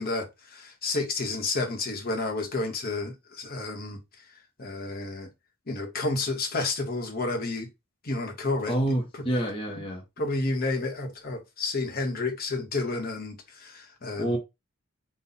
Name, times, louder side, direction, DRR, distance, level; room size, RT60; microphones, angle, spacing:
voice 1, 0.0-4.0 4.6-5.3 5.7-7.7 8.0-9.0 10.2-14.4, left 2 dB, 45° left, 1.1 m, -30 dB
voice 2, 8.7-10.0 14.2-14.4, right 1 dB, 25° left, 0.8 m, -27 dB
4.1 x 2.3 x 3.9 m
head